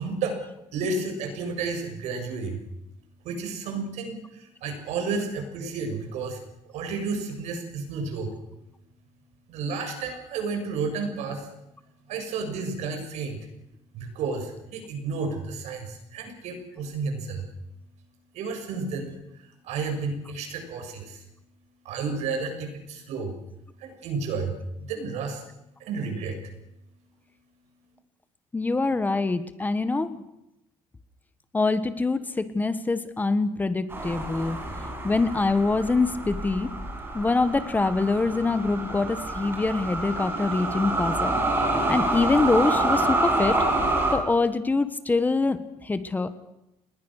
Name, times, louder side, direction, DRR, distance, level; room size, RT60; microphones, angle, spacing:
voice 1, 0.0-2.8 3.0-8.4 8.9-11.6 12.0-13.5 13.9-17.6 17.9-25.5 25.8-26.7 27.9-28.0, right 4 dB, 80° right, 5 dB, 7.2 m, -32 dB
voice 2, 28.5-30.2 31.5-34.6 35.0-36.7 37.1-43.6 44.1-46.3, left 3 dB, 15° left, 12 dB, 1.4 m, -25 dB
sound 1, 33.9-44.1, right 2 dB, 20° right, 6.2 m, -27 dB
30.0 x 21.0 x 6.6 m, 0.87 s
cardioid pair, 145°, 11 cm